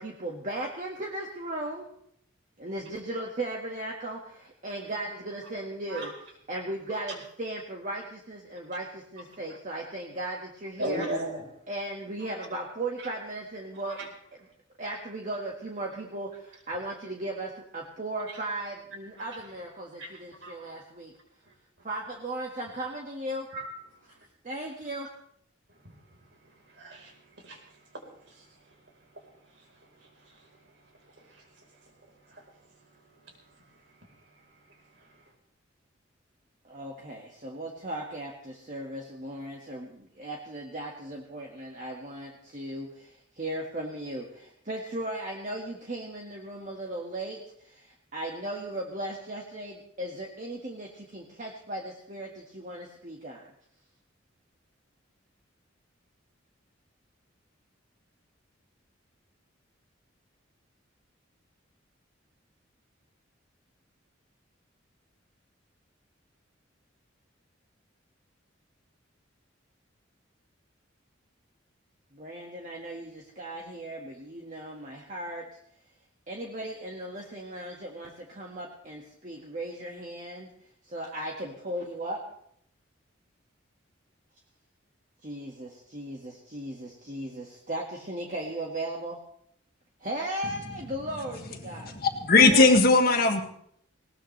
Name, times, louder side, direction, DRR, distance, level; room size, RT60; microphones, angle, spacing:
voice 1, 0.0-1.9 2.6-6.1 6.5-11.1 11.7-14.0 14.8-21.1 21.8-23.5 24.4-25.1 36.6-53.5 72.1-75.4 76.3-80.5 80.8-82.2 85.2-89.2 90.0-91.9 92.3-92.6, right 1 dB, 40° right, 0 dB, 1.7 m, -37 dB
voice 2, 10.8-11.4 12.2-12.3 13.8-14.1 19.2-19.4 20.0-20.6 23.5-23.6 25.7-26.2 26.5-28.0 28.3-28.7 29.1-30.6 30.9-31.7 32.2-32.5 33.1-34.3 34.7-35.2, right 1 dB, 65° right, 1 dB, 4.2 m, -40 dB
voice 3, 91.8-93.4, left 3 dB, 50° left, 3 dB, 1.9 m, -19 dB
20.0 x 18.5 x 3.3 m, 0.69 s
head